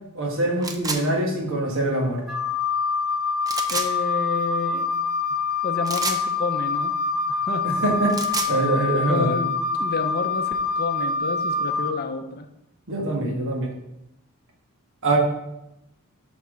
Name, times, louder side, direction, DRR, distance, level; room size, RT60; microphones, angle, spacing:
voice 1, 0.1-2.2 7.6-8.2 8.5-9.3 12.9-13.7 15.0-15.2, right 2 dB, 60° right, 0 dB, 1.6 m, -24 dB
sound 1, 0.6-1.0 3.4-3.9 5.9-6.2 7.9-8.5, right 4 dB, 15° right, 0.5 m, -28 dB
Wind instrument woodwind instrument, 2.3-11.9, left 4 dB, ahead, 1.0 m, -25 dB
voice 2, 3.7-4.9 5.6-7.0 7.3-7.7 9.1-9.5 9.8-12.5, left 4 dB, 45° left, 7 dB, 0.7 m, -30 dB
5.8 x 4.2 x 6.3 m, 0.88 s
head